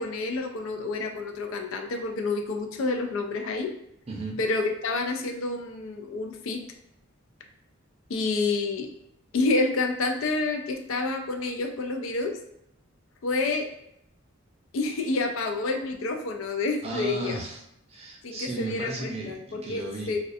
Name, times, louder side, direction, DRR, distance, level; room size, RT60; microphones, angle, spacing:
voice 1, 0.0-3.7 4.4-6.6 8.1-8.9 9.3-12.3 13.2-13.7 14.7-17.4 18.2-18.9 19.3-20.2, left 3 dB, 75° left, 4 dB, 0.4 m, -28 dB
voice 2, 4.1-4.4 16.8-17.6 17.9-20.1, right 2 dB, 30° right, -1 dB, 0.5 m, -34 dB
2.3 x 2.3 x 2.5 m, 0.78 s
head